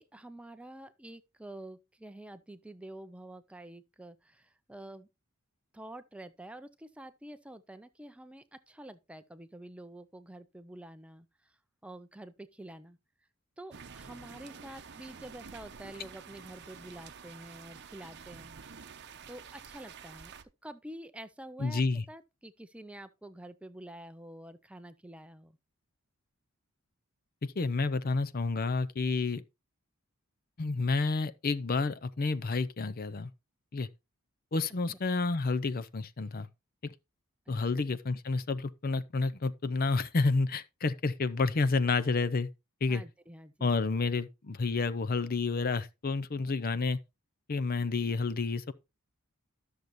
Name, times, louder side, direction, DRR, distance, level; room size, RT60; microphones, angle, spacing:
voice 1, 0.0-5.1 5.7-13.0 13.6-18.5 19.3-20.3 20.6-21.8 22.1-25.6 37.5-37.6 42.9-43.8, right 1 dB, 5° right, 0.5 m, -48 dB
sound 1, 13.7-20.4, right 6 dB, 50° right, 0.8 m, -49 dB
voice 2, 21.6-22.0 27.4-29.4 30.6-33.3 33.7-33.9 34.5-36.5 36.8-36.9 37.5-42.5 42.8-43.0 43.6-47.0 47.5-48.7, left 3 dB, 40° left, 0.6 m, -30 dB
13.0 x 6.6 x 3.0 m
head